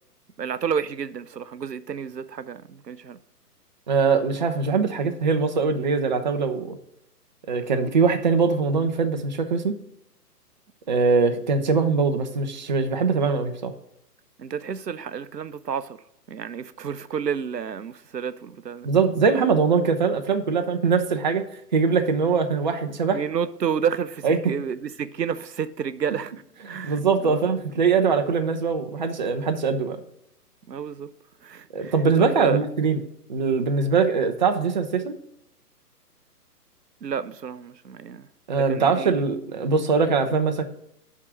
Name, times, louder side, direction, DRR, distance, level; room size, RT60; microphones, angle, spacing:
voice 1, 0.4-3.2 14.4-16.0 16.3-18.9 23.1-26.3 26.7-27.4 30.7-31.1 31.4-32.7 37.0-38.3 38.7-39.1, right 7 dB, 90° right, 0.6 m, -30 dB
voice 2, 3.9-6.8 7.5-9.8 10.9-13.7 18.8-21.4 21.7-23.2 24.2-24.4 26.7-30.0 31.7-33.0 33.3-35.1 38.5-40.6, right 5 dB, 30° right, 0.5 m, -22 dB
9.8 x 3.7 x 5.8 m
figure-of-eight pair, 125°, 48 cm